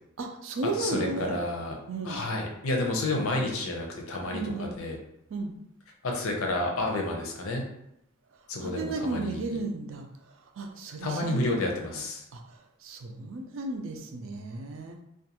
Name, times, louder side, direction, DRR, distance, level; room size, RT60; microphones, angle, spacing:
voice 1, 0.2-1.4 1.9-2.2 4.3-4.7 5.3-5.5 8.6-10.1 10.6-11.7 12.3-15.0, right 3 dB, 65° right, 4 dB, 0.4 m, -34 dB
voice 2, 0.8-1.8 2.0-5.0 6.0-7.6 8.5-9.6 11.0-12.2, left 2 dB, 80° left, 1 dB, 0.6 m, -30 dB
2.4 x 2.2 x 2.8 m, 0.80 s
head